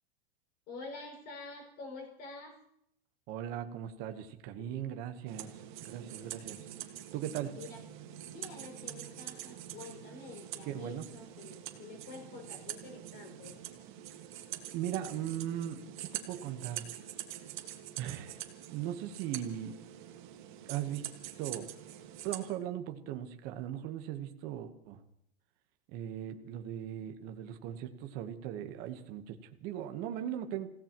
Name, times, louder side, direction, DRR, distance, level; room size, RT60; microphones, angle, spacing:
voice 1, 0.7-2.6 4.6-5.0 7.5-7.8 8.2-13.5, left 4 dB, 30° left, 2 dB, 5.5 m, -48 dB
voice 2, 3.3-5.5 5.8-6.6 7.1-7.5 10.7-11.0 14.7-16.8 18.0-18.4 18.7-19.8 20.7-21.0 21.4-21.7 22.2-25.0 25.9-30.7, right 11 dB, 30° right, 6 dB, 1.1 m, -38 dB
sound 1, 5.3-22.5, right 12 dB, 50° right, 1.7 m, -45 dB
29.0 x 16.5 x 3.0 m, 0.74 s
supercardioid pair, 165°, 31 cm